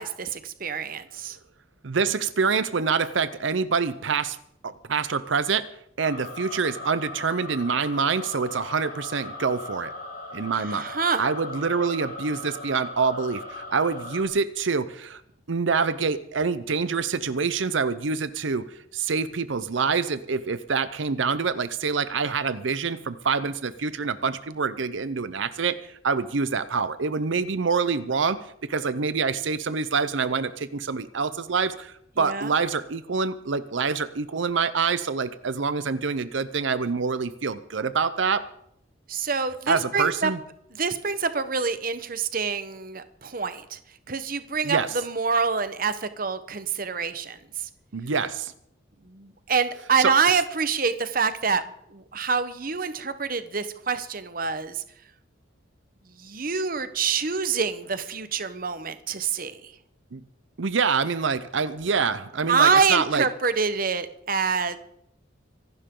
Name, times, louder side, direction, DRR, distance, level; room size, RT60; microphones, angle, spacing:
voice 1, 0.0-1.4 10.7-11.2 32.2-32.5 39.1-40.3 40.7-43.8 44.1-47.7 49.0-51.6 51.9-54.8 56.2-59.7 62.5-64.8, right 5 dB, 45° right, 11 dB, 1.1 m, -26 dB
voice 2, 1.8-4.4 4.6-5.7 6.0-9.9 10.3-10.9 11.2-15.2 15.5-38.4 39.7-40.4 44.6-44.9 47.9-48.5 50.0-50.1 60.1-60.2 60.6-63.2, right 5 dB, 80° right, 13 dB, 0.7 m, -26 dB
sound 1, 6.0-14.3, left 2 dB, 45° left, 4.7 m, -39 dB
25.0 x 11.5 x 3.8 m, 0.73 s
head